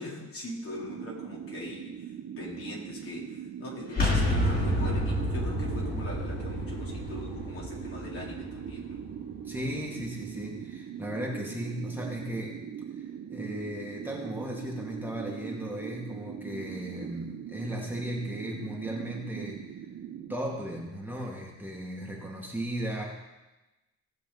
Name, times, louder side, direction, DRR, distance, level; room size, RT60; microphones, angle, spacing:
voice 1, 0.0-1.9 2.4-9.0, left 2 dB, 45° left, -4 dB, 3.8 m, -41 dB
sound 1, 0.8-20.4, right 8 dB, 55° right, 1.0 m, -41 dB
sound 2, 3.9-9.6, equal, 30° left, 3.6 m, -30 dB
voice 2, 9.4-12.6 12.9-19.8 20.3-23.0, equal, 5° right, -3 dB, 2.3 m, -36 dB
18.5 x 6.5 x 4.1 m, 1.1 s
cardioid pair, 90°, 30 cm